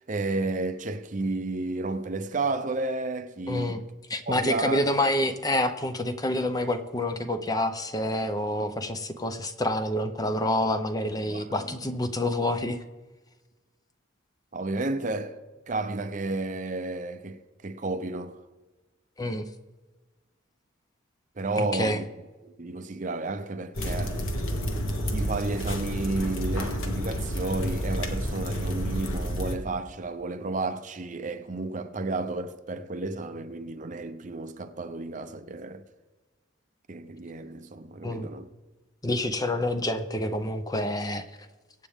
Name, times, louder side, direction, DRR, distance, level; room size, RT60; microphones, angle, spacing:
voice 1, 0.1-3.8 4.3-4.8 11.3-11.9 14.5-15.4 15.7-18.4 21.4-22.0 22.4-24.2 25.1-35.8 36.9-38.5, right 2 dB, 40° right, 0.7 m, -32 dB
voice 2, 3.5-3.8 4.1-12.8 19.2-19.5 21.6-22.0 38.0-38.3 39.0-41.2, left 1 dB, 20° left, 0.6 m, -27 dB
sound 1, 23.7-29.6, equal, 85° left, 1.5 m, -30 dB
23.0 x 8.4 x 3.6 m
head